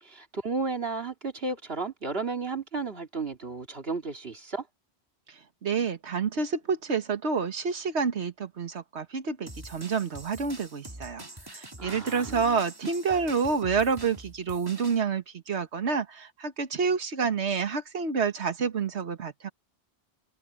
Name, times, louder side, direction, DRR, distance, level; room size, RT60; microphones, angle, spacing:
voice 1, 0.0-4.7 11.8-12.6, right 4 dB, 60° right, 2.8 m, -33 dB
voice 2, 5.6-19.5, right 5 dB, 80° right, 1.7 m, -28 dB
sound 1, 9.5-15.0, right 1 dB, 20° right, 2.3 m, -45 dB
omnidirectional pair, 1.1 m